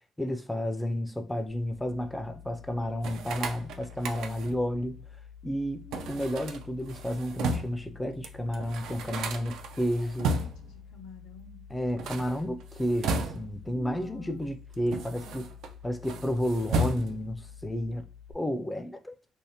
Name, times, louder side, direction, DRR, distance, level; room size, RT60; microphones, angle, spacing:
voice 1, 0.2-5.0 5.4-10.4 11.7-15.5 15.8-18.1 18.3-19.1, equal, 10° left, 0.4 m, -31 dB
sound 1, 1.5-18.3, left 7 dB, 60° right, 0.7 m, -49 dB
sound 2, 3.0-4.7 5.9-7.9 8.2-8.3 8.5-10.8 11.8-13.7 14.4-15.7 16.0-17.4, right 2 dB, 85° right, 0.4 m, -34 dB
voice 2, 10.2-11.7 13.7-14.4 15.2-15.5, left 5 dB, 85° left, 0.6 m, -50 dB
3.4 x 2.1 x 2.7 m
cardioid pair, 90°, 0 cm